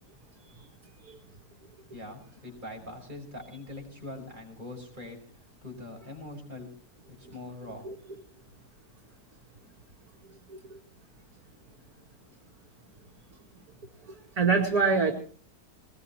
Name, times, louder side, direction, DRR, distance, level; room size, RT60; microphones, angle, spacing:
voice 1, 1.9-6.7 7.1-7.9, left 2 dB, 30° right, 0 dB, 6.0 m, -43 dB
voice 2, 14.4-15.1, right 4 dB, 75° right, -1 dB, 2.5 m, -25 dB
21.0 x 21.0 x 3.0 m, 0.41 s
omnidirectional pair, 1.6 m